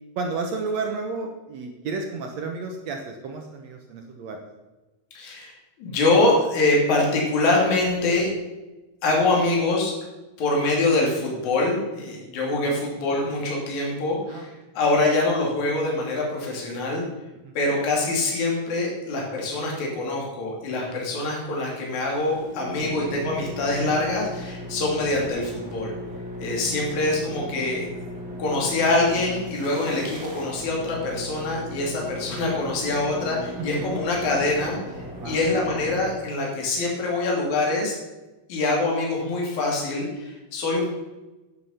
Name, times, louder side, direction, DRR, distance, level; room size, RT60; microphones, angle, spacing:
voice 1, 0.2-4.4 12.6-12.8 14.3-14.5 17.4-17.6 33.6-33.9 35.2-35.4, right 4 dB, 75° right, 3 dB, 1.6 m, -32 dB
voice 2, 5.2-8.3 9.0-9.9 10.4-17.0 17.6-25.9 26.4-27.9 28.4-34.8 35.2-38.0 38.5-40.9, left 2 dB, 50° left, -2 dB, 4.0 m, -24 dB
sound 1, 22.0-36.6, equal, 35° right, 2.2 m, -37 dB
10.5 x 9.6 x 5.7 m, 1.1 s
omnidirectional pair, 4.6 m